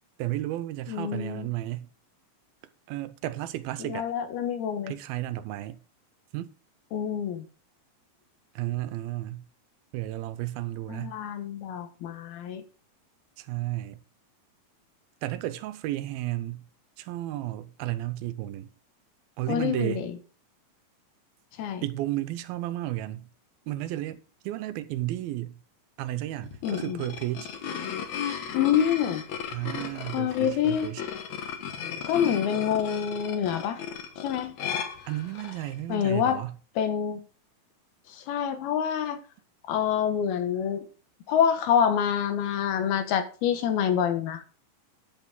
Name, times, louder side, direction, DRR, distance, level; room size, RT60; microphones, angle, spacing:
voice 1, 0.2-1.9 2.9-4.1 4.9-5.8 6.3-6.5 8.6-9.5 9.9-11.2 13.4-14.0 15.2-16.7 17.0-18.7 19.4-20.0 21.8-23.3 23.7-25.6 26.0-27.5 29.5-31.0 35.1-36.6, right 15 dB, 90° right, 2.6 m, -33 dB
voice 2, 0.9-1.5 3.8-4.9 6.9-7.4 10.9-12.6 19.5-20.2 21.6-21.8 26.6-27.0 28.5-29.2 30.1-30.9 32.1-33.8 34.2-34.5 35.9-36.4 36.8-37.2 38.1-39.2 39.7-40.8 41.3-44.4, left 8 dB, 90° left, 3.1 m, -26 dB
sound 1, 26.4-35.7, left 7 dB, 60° left, 2.3 m, -35 dB
10.5 x 8.3 x 3.6 m
omnidirectional pair, 4.2 m